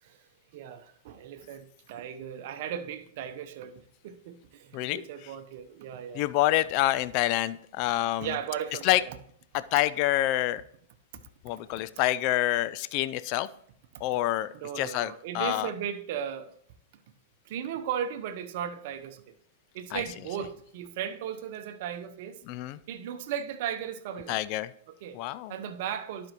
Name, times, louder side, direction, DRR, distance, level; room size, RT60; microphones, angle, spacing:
voice 1, 0.0-6.2 8.2-9.2 14.5-16.5 17.4-19.3 19.7-22.4 22.9-24.4 24.9-25.2 25.5-26.3, right 9 dB, 55° right, 0.8 m, -36 dB
voice 2, 6.2-8.3 8.8-9.0 9.7-10.6 11.4-13.5 14.0-14.5 14.8-15.7 19.9-20.0 22.5-22.8 24.3-24.7 25.1-25.5, left 15 dB, 45° left, 0.3 m, -27 dB
11.5 x 5.2 x 3.0 m
hypercardioid pair, 110°, 0 cm